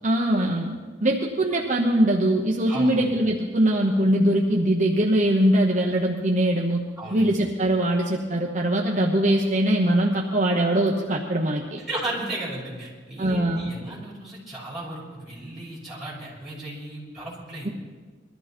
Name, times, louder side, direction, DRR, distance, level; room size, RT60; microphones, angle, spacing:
voice 1, 0.0-0.7 1.0-6.8 7.1-11.8 13.2-13.7, right 1 dB, 40° right, 0 dB, 1.1 m, -22 dB
voice 2, 7.0-7.3 11.9-17.7, right 1 dB, ahead, -8 dB, 6.3 m, -35 dB
21.5 x 13.5 x 4.5 m, 1.5 s
head